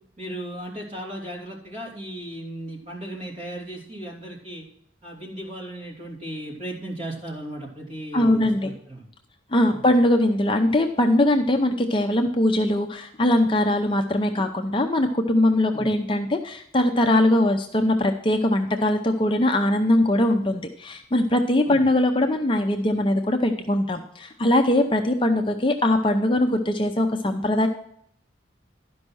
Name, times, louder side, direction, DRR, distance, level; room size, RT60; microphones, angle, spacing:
voice 1, 0.2-4.6 5.0-9.0 9.7-9.8 15.7-15.9 21.7-21.8, right 1 dB, 35° right, -3 dB, 3.1 m, -36 dB
voice 2, 8.1-8.7 9.5-27.7, left 1 dB, 25° left, 5 dB, 0.5 m, -21 dB
12.0 x 5.4 x 6.2 m, 0.68 s
head